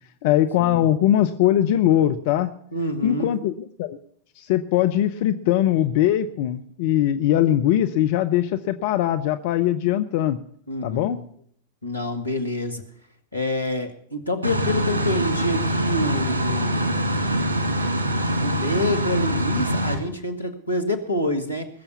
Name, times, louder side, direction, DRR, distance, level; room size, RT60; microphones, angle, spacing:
voice 1, 0.2-2.5 3.0-4.0 4.4-10.4 10.8-11.2, left 12 dB, 50° left, 9 dB, 0.7 m, -21 dB
voice 2, 2.7-3.3 10.7-11.2 11.8-12.8 13.3-16.9 18.4-21.7, left 1 dB, 85° left, 5 dB, 1.8 m, -27 dB
sound 1, 14.4-20.0, equal, 75° right, 2.2 m, -24 dB
20.5 x 7.0 x 7.0 m, 0.63 s
figure-of-eight pair, 90°, 0 cm